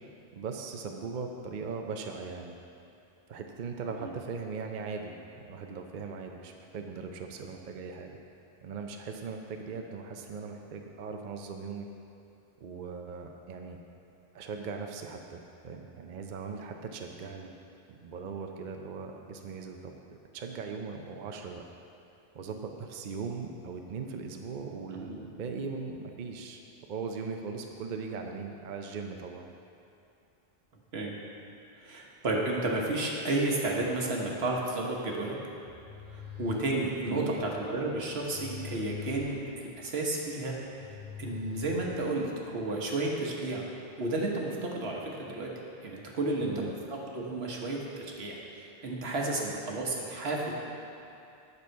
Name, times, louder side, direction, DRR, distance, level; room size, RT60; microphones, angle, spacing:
voice 1, 0.3-2.6 3.3-8.1 8.6-11.9 12.6-13.8 14.3-17.5 17.9-21.6 22.3-26.6 26.9-29.5 37.1-37.3 46.4-46.7, right 5 dB, 55° right, 3 dB, 0.7 m, -39 dB
voice 2, 31.8-35.4 36.1-40.5 40.8-43.6 44.0-45.5 45.8-48.3 48.8-50.5, right 2 dB, 80° right, -2 dB, 1.4 m, -32 dB
sound 1, 35.6-42.5, left 8 dB, 40° left, 2.2 m, -44 dB
9.3 x 6.8 x 4.5 m, 2.7 s
omnidirectional pair, 1.0 m